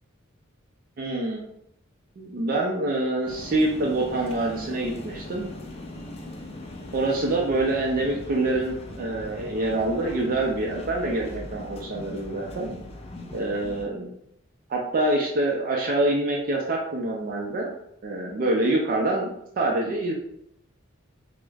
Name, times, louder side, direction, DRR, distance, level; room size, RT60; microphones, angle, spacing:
voice 1, 1.0-1.4 2.2-5.5 6.9-12.7 13.3-14.1 14.7-17.7 18.0-20.1, right 2 dB, 45° right, -1 dB, 0.4 m, -26 dB
sound 1, 3.3-13.9, left 1 dB, 30° left, 0.4 m, -40 dB
4.7 x 2.0 x 2.3 m, 0.75 s
head